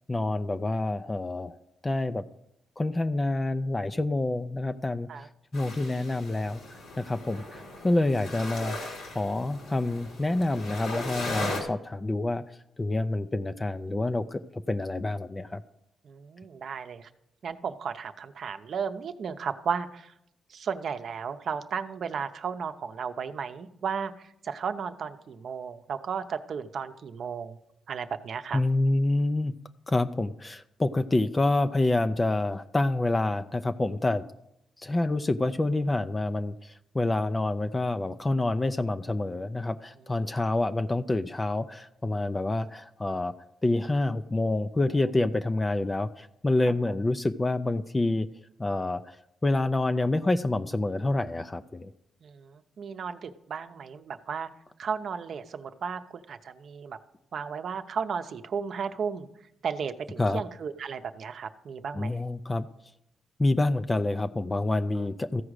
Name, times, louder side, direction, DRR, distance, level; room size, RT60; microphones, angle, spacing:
voice 1, 0.1-1.6 1.8-2.2 2.8-5.1 5.5-12.4 12.8-14.4 14.7-15.6 28.5-29.5 29.9-34.2 34.8-43.3 43.6-48.3 48.6-49.2 49.4-51.9 60.2-60.4 61.9-62.7 63.4-65.4, left 2 dB, 20° left, 10 dB, 0.4 m, -27 dB
sound 1, 5.5-11.6, left 2 dB, 85° left, 3.1 m, -38 dB
voice 2, 16.0-17.1 17.4-20.1 20.5-27.6 27.9-28.6 44.9-45.1 46.9-47.0 52.2-54.5 54.8-57.0 57.3-59.3 59.6-62.2 64.9-65.1, right 6 dB, 60° right, 8 dB, 0.7 m, -34 dB
14.0 x 4.9 x 6.4 m, 0.80 s
cardioid pair, 95°, 0 cm